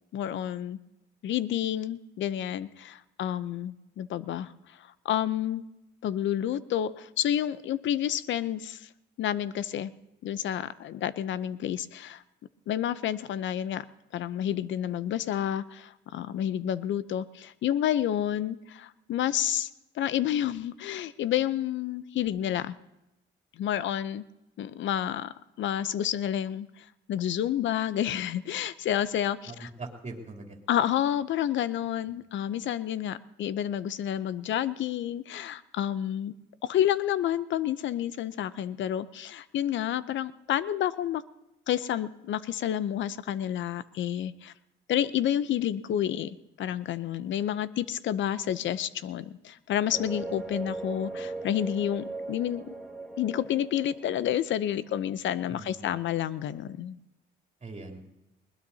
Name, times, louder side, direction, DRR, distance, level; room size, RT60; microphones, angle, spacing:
voice 1, 0.1-0.8 1.2-5.6 6.0-8.9 9.2-9.9 10.2-12.2 12.7-13.8 14.1-19.7 19.9-22.7 23.6-24.2 24.6-29.7 30.7-36.3 36.6-41.2 41.7-44.5 44.9-52.6 53.2-57.0, left 11 dB, 70° left, 16 dB, 0.7 m, -30 dB
voice 2, 29.5-30.6 55.5-55.9 57.6-58.1, right 3 dB, 35° right, 2 dB, 3.2 m, -41 dB
sound 1, 49.9-54.7, right 3 dB, ahead, 2.1 m, -39 dB
20.5 x 20.0 x 2.8 m, 0.92 s
cardioid pair, 90°, 20 cm